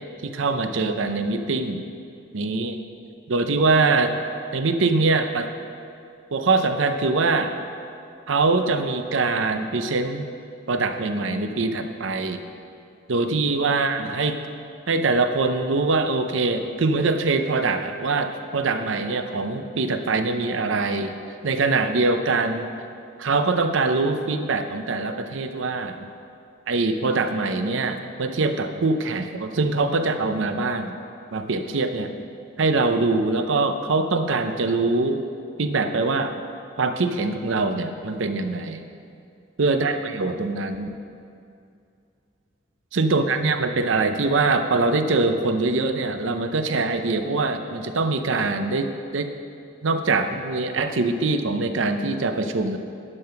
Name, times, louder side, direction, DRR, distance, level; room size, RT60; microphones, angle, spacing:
voice 1, 0.2-1.8 2.3-2.8 3.3-4.1 4.5-5.5 6.3-7.5 8.3-10.3 10.7-12.4 13.1-14.4 14.9-21.2 21.4-22.7 23.2-26.1 26.7-31.0 31.3-32.2 32.6-35.2 35.6-36.3 36.8-38.8 39.6-40.9 42.9-49.3 49.8-52.8, right 3 dB, 75° right, 7 dB, 0.6 m, -23 dB
11.0 x 5.7 x 5.8 m, 2.5 s
head